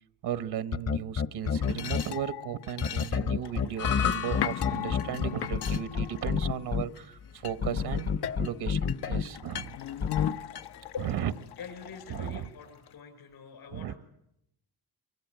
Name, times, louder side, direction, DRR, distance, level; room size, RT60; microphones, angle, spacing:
voice 1, 0.2-9.8 11.0-11.3 12.1-12.5 13.7-13.9, right 10 dB, 90° right, 13 dB, 1.2 m, -35 dB
sound 1, 0.7-2.0 2.8-6.8 7.6-9.2 10.0-10.3, left 6 dB, 40° left, 0.9 m, -28 dB
sound 2, 1.4-7.0 7.4-13.0, left 10 dB, 90° left, 1.0 m, -38 dB
sound 3, 3.8-12.2, left 8 dB, 60° left, 1.3 m, -39 dB
voice 2, 11.6-14.0, left 6 dB, 75° left, 4 dB, 5.6 m, -43 dB
24.0 x 24.0 x 9.4 m, 0.81 s
cardioid pair, 130°, 38 cm